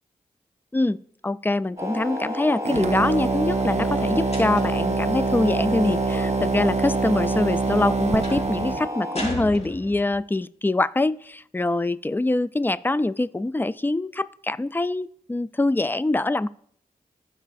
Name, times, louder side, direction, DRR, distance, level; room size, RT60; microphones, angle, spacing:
voice 1, 1.2-16.5, left 2 dB, 15° left, 0.3 m, -24 dB
sound 1, 1.8-9.3, equal, 20° right, 2.1 m, -31 dB
sound 2, 2.6-8.9, right 4 dB, 45° right, 0.5 m, -25 dB
sound 3, 4.3-4.9 8.2-8.5 9.1-10.2, left 1 dB, 45° left, 2.8 m, -34 dB
15.0 x 5.5 x 2.5 m
cardioid pair, 40°, 16 cm